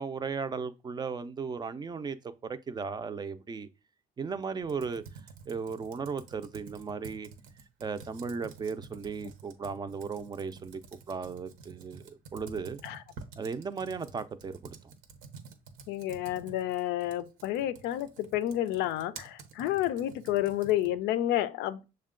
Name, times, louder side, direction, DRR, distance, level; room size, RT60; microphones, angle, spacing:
voice 1, 0.0-2.2 2.4-3.7 4.2-5.0 5.5-7.3 7.8-10.8 11.1-12.8 13.4-14.7, right 5 dB, 25° right, 0.4 m, -36 dB
Computer keyboard, 4.6-21.0, right 5 dB, 85° right, 0.8 m, -50 dB
voice 2, 15.9-21.8, left 13 dB, 90° left, 0.4 m, -30 dB
6.4 x 2.2 x 3.7 m
cardioid pair, 110°, 17 cm